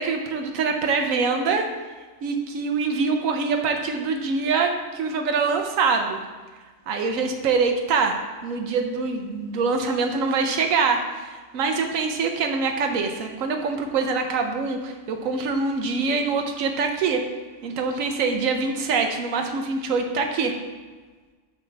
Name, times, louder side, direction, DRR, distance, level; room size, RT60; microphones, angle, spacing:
voice 1, 0.0-1.7 2.2-6.2 6.9-17.2 17.6-20.6, right 4 dB, 85° right, 4 dB, 1.1 m, -24 dB
7.0 x 6.2 x 3.3 m, 1.4 s
omnidirectional pair, 1.4 m